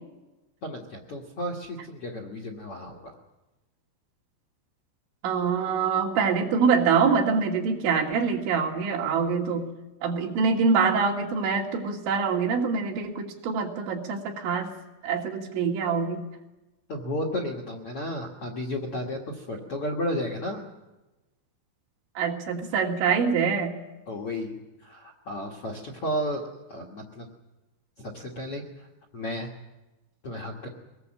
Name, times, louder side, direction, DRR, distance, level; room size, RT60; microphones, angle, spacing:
voice 1, 0.6-3.2 16.9-20.6 24.1-26.4 26.7-27.3 28.0-28.9 29.1-29.5 30.2-30.7, left 1 dB, 60° left, 2 dB, 1.5 m, -33 dB
voice 2, 5.2-9.7 10.0-14.7 15.0-16.3 22.2-23.7, right 5 dB, 80° right, -2 dB, 4.8 m, -25 dB
24.0 x 19.5 x 7.7 m, 1.1 s
omnidirectional pair, 5.3 m